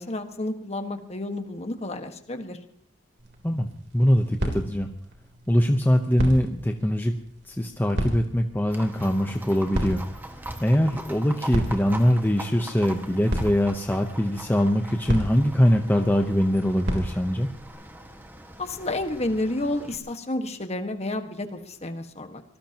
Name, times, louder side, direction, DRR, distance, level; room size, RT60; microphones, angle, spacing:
voice 1, 0.0-2.6 18.6-22.4, left 1 dB, 35° left, 6 dB, 1.6 m, -30 dB
sound 1, 3.2-17.7, equal, 60° right, 3.5 m, -35 dB
voice 2, 3.9-4.9 5.5-7.2 7.5-10.0 10.6-17.5, equal, 10° left, 4 dB, 0.9 m, -22 dB
Livestock farm animals working animals, 8.7-20.0, right 1 dB, 10° right, 1.7 m, -41 dB
25.0 x 19.0 x 3.0 m, 0.64 s
head